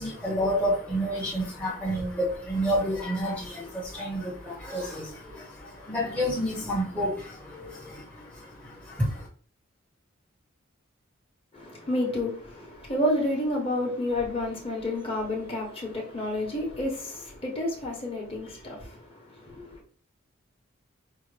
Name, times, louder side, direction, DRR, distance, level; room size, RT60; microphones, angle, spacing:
voice 1, 0.0-9.3, equal, 5° left, 0.8 m, -30 dB
voice 2, 11.5-19.8, left 1 dB, 30° left, 1.2 m, -30 dB
5.5 x 2.2 x 3.2 m
head